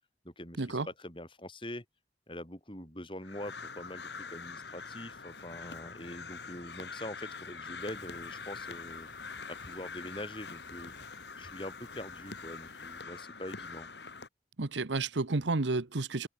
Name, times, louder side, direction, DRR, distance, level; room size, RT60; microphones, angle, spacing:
voice 1, 0.2-1.9 2.3-9.1 9.5-13.9, left 1 dB, 25° left, 7.1 m, -44 dB
Crow, 3.2-14.3, left 4 dB, 70° left, 4.2 m, -44 dB
sound 1, 7.8-13.0, left 2 dB, 45° left, 5.7 m, -60 dB
voice 2, 14.6-16.3, right 3 dB, 85° right, 1.1 m, -31 dB
open air
head